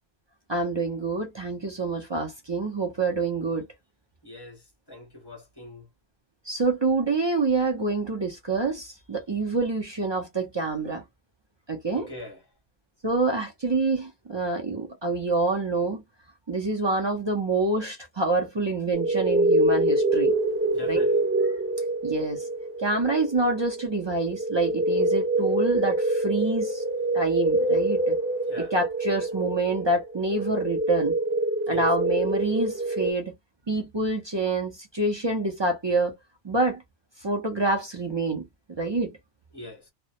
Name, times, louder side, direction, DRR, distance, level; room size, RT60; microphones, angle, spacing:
voice 1, 0.5-3.7 6.5-11.0 11.7-12.1 13.0-16.0 16.5-20.3 20.9-21.0 22.0-22.5 22.8-26.8 27.1-28.2 28.6-31.2 31.7-33.3 33.7-36.2 36.4-36.8 37.2-38.5 38.8-39.2, right 3 dB, 40° right, 0.4 m, -27 dB
voice 2, 4.2-4.6 4.9-5.9 11.9-12.4 20.7-21.2 28.5-28.7 31.7-31.9 39.5-39.9, left 2 dB, 25° left, 0.6 m, -42 dB
sound 1, 18.9-33.1, right 1 dB, 15° right, 0.8 m, -25 dB
2.2 x 2.1 x 2.7 m
omnidirectional pair, 1.2 m